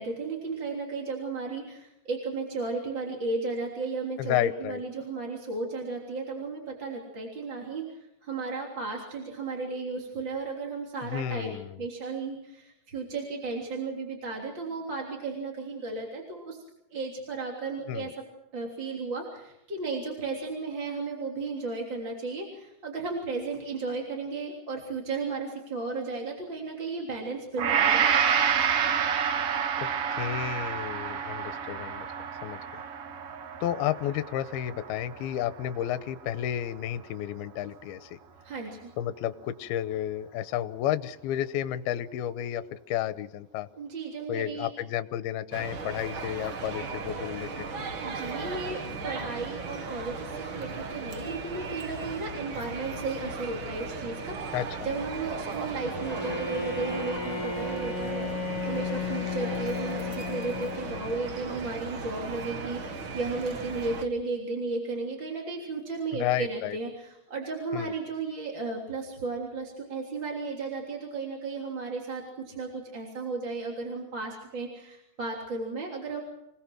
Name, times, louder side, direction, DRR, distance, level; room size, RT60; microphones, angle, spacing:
voice 1, 0.0-11.5 11.8-16.6 16.9-18.1 18.5-28.1 31.1-31.2 38.4-38.9 43.8-44.7 48.0-76.2, right 3 dB, 30° right, -1 dB, 3.6 m, -34 dB
voice 2, 4.2-4.8 11.0-11.8 17.9-18.1 29.8-32.1 32.4-32.8 33.6-38.2 39.0-43.7 44.3-47.6 54.5-54.7 66.1-66.8 67.7-67.9, left 11 dB, 75° left, 11 dB, 2.6 m, -32 dB
Gong, 27.6-35.9 36.3-36.5, right 7 dB, 65° right, 1.4 m, -28 dB
sound 1, 45.5-64.0, right 4 dB, 90° right, 1.1 m, -37 dB
Bowed string instrument, 55.9-61.3, left 4 dB, 40° left, 2.3 m, -34 dB
28.5 x 19.0 x 6.2 m, 0.88 s
omnidirectional pair, 4.9 m